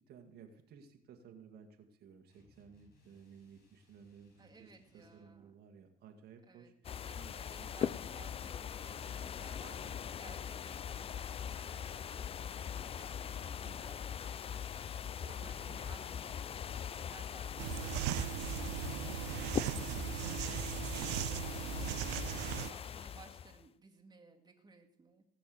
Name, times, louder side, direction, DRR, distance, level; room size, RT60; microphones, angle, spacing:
voice 1, 0.1-7.1 13.6-14.1 15.2-16.2, right 6 dB, 70° right, 4 dB, 1.9 m, -57 dB
sound 1, 2.3-5.4, left 3 dB, 65° left, 6.5 m, -69 dB
voice 2, 4.4-5.5 6.5-6.7 7.0-25.2, right 4 dB, 25° right, 1 dB, 2.2 m, -59 dB
sound 2, 6.8-23.6, left 8 dB, 35° left, 0.5 m, -41 dB
sound 3, 17.6-22.7, right 19 dB, 85° right, 0.4 m, -38 dB
18.0 x 6.2 x 7.8 m, 0.71 s
cardioid pair, 110°, 17 cm